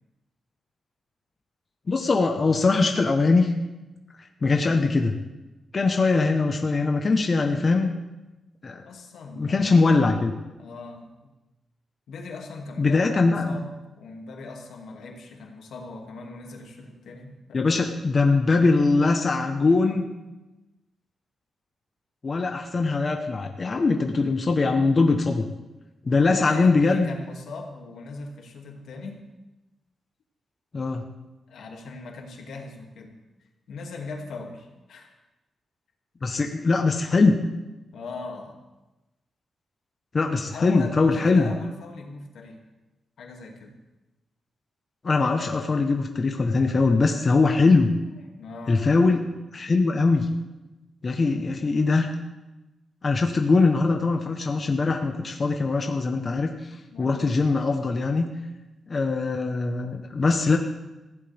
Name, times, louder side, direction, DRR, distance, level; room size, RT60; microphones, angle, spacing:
voice 1, 1.9-3.5 4.2-5.1 5.7-7.9 8.6-8.8 9.4-10.3 12.8-13.5 17.5-20.1 22.2-25.4 26.0-27.1 30.7-31.0 36.2-37.4 40.1-41.5 45.0-47.9 48.7-49.2 49.5-50.3 51.0-52.1 53.0-56.5 57.0-58.3 58.9-60.6, left 3 dB, 30° left, 3 dB, 1.1 m, -21 dB
voice 2, 8.8-9.9 10.6-11.1 12.1-17.7 26.2-29.2 31.5-35.1 37.9-38.6 40.5-42.6 43.2-43.8 48.1-49.0 56.9-57.3, left 3 dB, 85° left, 1 dB, 2.5 m, -39 dB
19.0 x 15.5 x 3.5 m, 1.1 s
wide cardioid pair, 165°, 0 cm